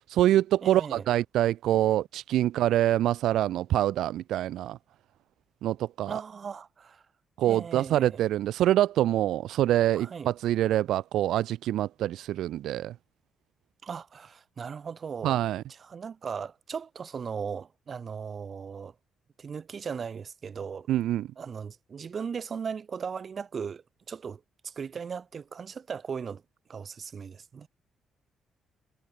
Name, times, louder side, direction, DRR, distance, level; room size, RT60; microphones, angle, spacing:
voice 1, 0.1-4.8 5.6-6.2 7.4-12.9 15.2-15.6 20.9-21.3, right 13 dB, 80° right, 0.6 m, -25 dB
voice 2, 0.6-1.1 6.1-7.0 7.5-8.2 9.9-10.3 13.8-15.4 15.8-18.9 19.4-20.9 21.4-26.4 26.7-27.7, right 6 dB, 45° right, 7.2 m, -37 dB
cardioid pair, 90°, 0 cm